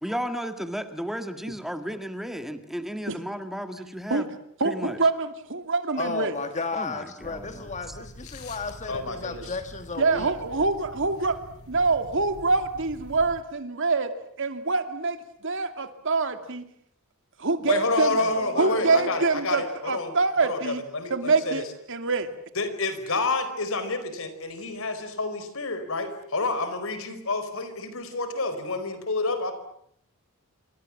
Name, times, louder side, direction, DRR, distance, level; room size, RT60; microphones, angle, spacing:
voice 1, 0.0-4.3 4.6-5.0 6.7-8.0, equal, ahead, 8 dB, 1.8 m, -34 dB
voice 2, 4.6-6.3 10.0-11.4 11.7-16.6 17.4-18.2 18.6-20.8 21.1-22.4, right 3 dB, 60° right, 8 dB, 2.5 m, -25 dB
voice 3, 6.0-10.3 18.1-19.2, left 3 dB, 35° left, 8 dB, 1.6 m, -34 dB
sound 1, 7.2-13.4, equal, 85° left, 4.6 m, -45 dB
voice 4, 8.9-9.4 17.7-20.1 20.4-21.5 22.6-29.5, left 3 dB, 65° left, 11 dB, 4.7 m, -29 dB
27.5 x 26.0 x 7.4 m, 0.68 s
head